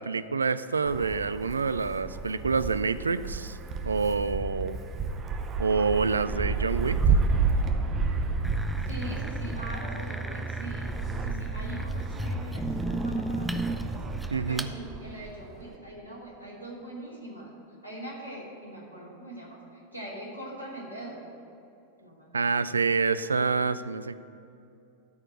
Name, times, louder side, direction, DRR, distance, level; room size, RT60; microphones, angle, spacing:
voice 1, 0.0-3.6 3.8-4.8 5.6-7.0 14.3-14.7 22.3-24.2, right 4 dB, 75° right, 14 dB, 0.3 m, -27 dB
Wind, 0.9-15.8, right 4 dB, 25° right, 0.8 m, -31 dB
sound 1, 8.4-14.7, right 1 dB, 5° right, 0.4 m, -34 dB
voice 2, 8.8-17.5 17.8-21.3 22.0-22.6, right 1 dB, 85° left, -4 dB, 2.7 m, -42 dB
13.0 x 4.4 x 7.5 m, 2.8 s
figure-of-eight pair, 90°, 0 cm